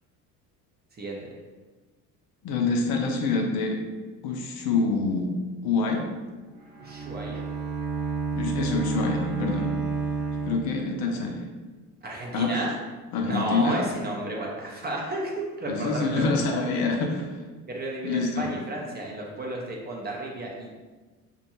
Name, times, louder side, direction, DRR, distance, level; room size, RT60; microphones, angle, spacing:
voice 1, 1.0-1.3 6.8-7.4 12.0-12.7 13.2-16.6 17.7-20.7, right 1 dB, 20° right, -2 dB, 0.5 m, -32 dB
voice 2, 2.4-3.8 4.2-5.3 5.6-6.1 8.3-9.7 10.5-11.5 12.3-12.6 13.1-13.8 15.7-17.3 18.0-18.5, left 3 dB, 55° left, 1 dB, 0.6 m, -26 dB
Bowed string instrument, 6.6-11.3, right 4 dB, 75° right, 0.9 m, -30 dB
2.5 x 2.2 x 2.9 m, 1.3 s
hypercardioid pair, 60°, 45 cm